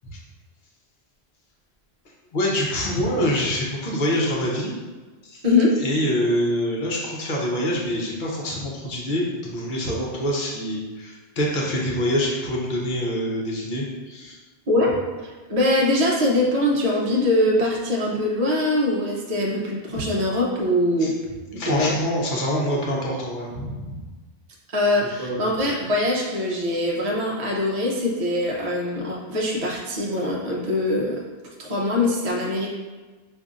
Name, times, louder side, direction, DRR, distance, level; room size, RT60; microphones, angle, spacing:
voice 1, 2.3-4.7 5.3-5.4 5.8-14.4 21.0-21.1 21.6-24.0 25.2-25.5, equal, 55° left, -3 dB, 0.9 m, -25 dB
voice 2, 15.2-21.1 21.5-22.0 24.7-31.2 31.6-32.7, left 1 dB, 40° right, -3 dB, 0.7 m, -22 dB
5.2 x 2.6 x 2.4 m, 1.3 s
omnidirectional pair, 1.1 m